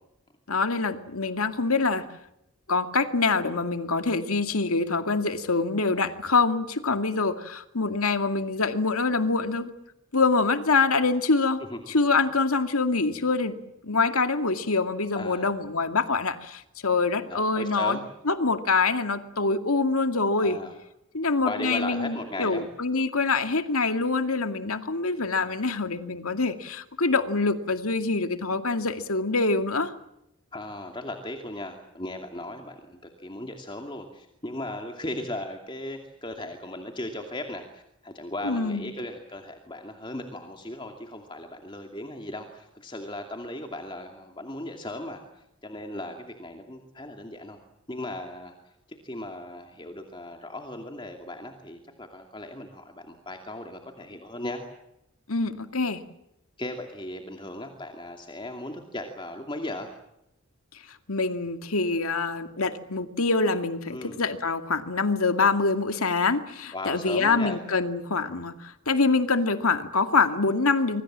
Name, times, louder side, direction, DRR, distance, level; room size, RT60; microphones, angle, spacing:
voice 1, 0.5-2.0 2.7-9.7 10.1-11.6 11.9-13.6 13.8-18.0 18.3-20.6 21.1-29.9 38.4-38.9 55.3-56.0 61.1-71.0, left 3 dB, 85° left, 8 dB, 2.2 m, -25 dB
voice 2, 15.1-15.5 17.2-18.0 20.4-20.7 21.4-22.6 30.5-47.6 47.9-54.6 56.6-59.9 63.9-64.2 66.7-67.6, left 1 dB, 20° left, 4 dB, 2.5 m, -37 dB
26.0 x 24.5 x 7.5 m, 0.83 s
head